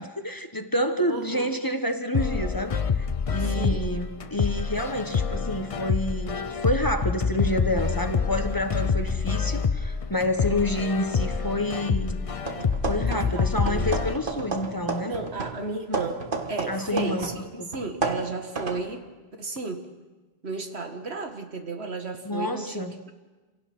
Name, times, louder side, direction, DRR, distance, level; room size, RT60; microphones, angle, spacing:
voice 1, 0.0-12.2 12.9-15.1 16.7-17.3 17.6-17.7 22.2-22.9, left 1 dB, 20° left, 7 dB, 1.1 m, -28 dB
voice 2, 1.1-1.5 3.4-3.9 13.1-13.9 15.0-19.1 19.4-19.9 20.4-23.1, right 3 dB, 90° right, 5 dB, 2.1 m, -34 dB
sound 1, 2.1-14.1, left 5 dB, 40° left, 0.7 m, -27 dB
sound 2, 12.4-13.4 13.7-17.4 17.7-18.9, right 3 dB, 55° right, 1.7 m, -32 dB
27.5 x 17.0 x 6.1 m, 1.3 s
omnidirectional pair, 1.1 m